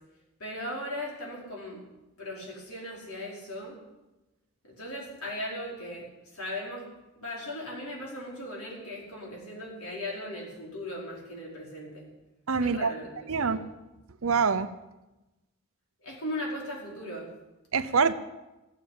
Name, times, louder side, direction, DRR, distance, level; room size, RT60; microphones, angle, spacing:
voice 1, 0.4-1.8 2.2-3.8 4.6-6.1 6.3-6.9 7.2-12.1 12.6-13.6 16.0-17.3, left 1 dB, 80° left, -3 dB, 5.1 m, -38 dB
voice 2, 12.5-12.9 13.3-13.7 14.2-14.7 17.7-18.1, right 5 dB, 65° right, 12 dB, 0.8 m, -25 dB
14.5 x 9.7 x 8.7 m, 1.0 s
head